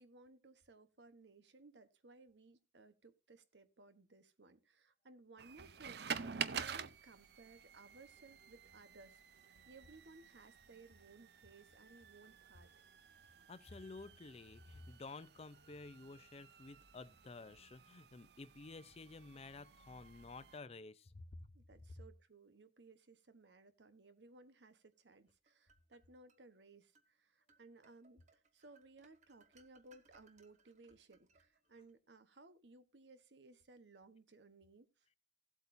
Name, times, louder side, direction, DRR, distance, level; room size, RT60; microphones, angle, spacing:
voice 1, 0.0-12.8 21.5-35.1, right 3 dB, 80° right, 1.1 m, -61 dB
sound 1, 5.4-20.6, right 7 dB, 65° right, 0.6 m, -49 dB
voice 2, 13.5-21.2, left 3 dB, 35° left, 0.6 m, -52 dB
sound 2, 25.1-26.4 26.9-27.1 27.5-31.9, right 4 dB, 45° right, 1.1 m, -71 dB
16.5 x 8.2 x 2.7 m
head